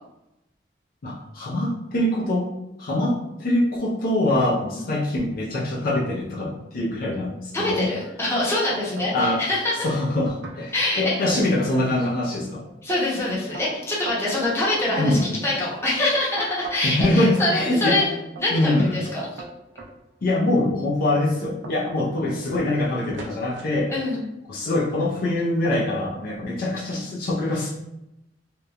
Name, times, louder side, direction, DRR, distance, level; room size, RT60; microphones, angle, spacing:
voice 1, 1.0-2.5 2.8-7.9 9.1-9.4 9.8-12.6 15.0-15.2 16.8-18.0 18.5-18.9 20.2-23.9 24.5-27.7, left 1 dB, 50° left, -4 dB, 0.4 m, -23 dB
voice 2, 7.5-9.7 10.7-11.3 12.8-18.1 18.4-19.3 23.9-24.2, left 2 dB, 15° left, -7 dB, 0.7 m, -25 dB
sound 1, 8.3-9.3 9.5-10.1 10.4-10.6 11.0-12.2 12.6-17.0 17.4-19.9 20.5-20.7 21.1-24.2 25.0-25.4 25.6-26.4, right 2 dB, 80° right, 0.5 m, -38 dB
2.9 x 2.1 x 2.4 m, 0.89 s
head